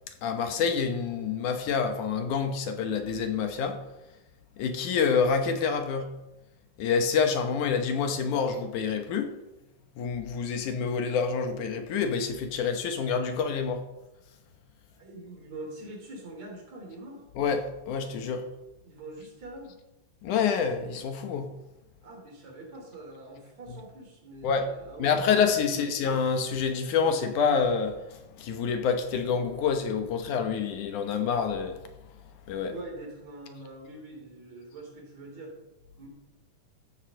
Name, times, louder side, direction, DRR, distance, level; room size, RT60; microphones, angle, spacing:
voice 1, 0.2-3.8 4.6-6.1 6.8-9.3 10.0-13.9 17.4-18.5 20.2-21.5 24.4-24.7 25.0-31.8 32.5-32.7, left 6 dB, 75° left, 2.6 m, -27 dB
voice 2, 15.0-17.2 18.8-19.7 22.0-26.0 32.7-35.6 36.0-36.1, right 2 dB, 55° right, 4.2 m, -44 dB
14.5 x 7.3 x 6.4 m
omnidirectional pair, 3.7 m